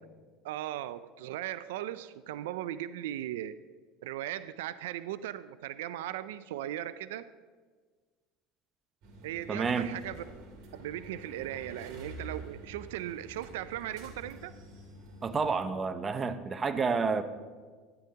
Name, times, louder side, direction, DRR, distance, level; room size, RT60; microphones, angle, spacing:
voice 1, 0.4-3.6 4.0-7.3 9.2-10.2 10.7-14.5, right 13 dB, 90° right, 15 dB, 0.3 m, -38 dB
sound 1, 9.0-15.4, right 2 dB, 60° right, 2.6 m, -48 dB
voice 2, 9.5-9.9 15.2-17.2, right 5 dB, 25° right, 10 dB, 0.7 m, -29 dB
13.5 x 10.5 x 2.8 m, 1.5 s
supercardioid pair, 120°, 0 cm